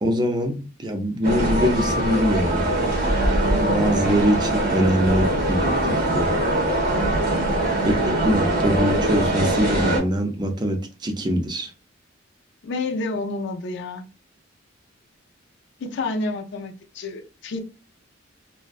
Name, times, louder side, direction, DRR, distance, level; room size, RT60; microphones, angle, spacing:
voice 1, 0.0-2.7 3.4-6.3 7.8-11.7, equal, 20° right, 0.4 m, -23 dB
sound 1, 1.2-10.0, right 1 dB, 50° right, 0.8 m, -22 dB
voice 2, 7.4-7.7 12.6-14.0 15.8-17.6, left 3 dB, 60° left, 0.4 m, -29 dB
2.6 x 2.1 x 2.3 m
head